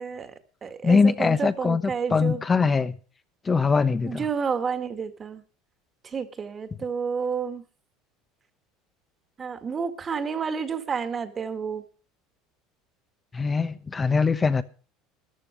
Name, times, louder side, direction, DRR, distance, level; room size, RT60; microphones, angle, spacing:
voice 1, 0.0-2.4 4.1-5.4 6.0-7.6 9.4-11.8, right 6 dB, 35° right, 2.0 m, -30 dB
voice 2, 0.8-1.8 2.1-3.0 3.4-4.2 13.3-14.6, left 4 dB, 25° left, 1.0 m, -22 dB
14.0 x 11.5 x 5.2 m
hypercardioid pair, 80°, 0 cm